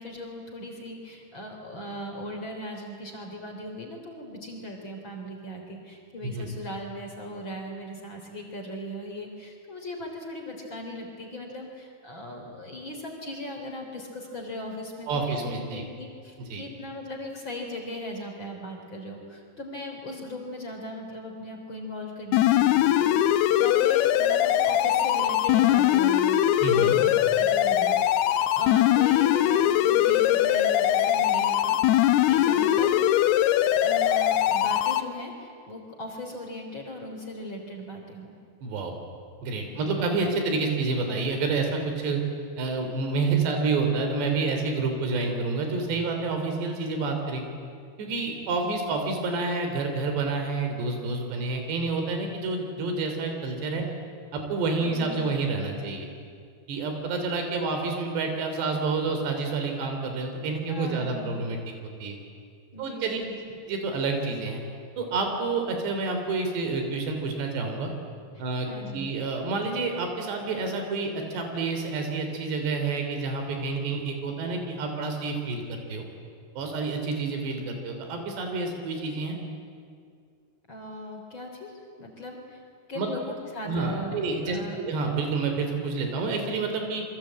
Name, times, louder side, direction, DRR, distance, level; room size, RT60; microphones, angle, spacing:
voice 1, 0.0-28.0 28.5-32.9 33.8-38.4 39.7-40.0 48.3-48.9 54.8-55.3 60.7-61.4 62.7-63.5 68.4-69.1 80.7-82.6 82.9-84.8, left 1 dB, 30° left, 2 dB, 3.8 m, -38 dB
voice 2, 15.1-15.8 16.5-16.6 26.6-27.0 38.6-38.9 39.4-42.2 42.6-47.4 48.0-53.8 54.3-56.1 56.7-61.6 62.0-62.2 62.8-63.2 63.7-64.6 65.0-67.9 68.4-68.7 68.9-76.1 76.6-79.4 83.0-83.1 83.7-87.0, right 3 dB, 80° right, 4 dB, 5.5 m, -28 dB
sound 1, 22.3-35.0, left 12 dB, 75° left, 2.8 m, -21 dB
28.0 x 23.0 x 8.8 m, 2.2 s
omnidirectional pair, 4.8 m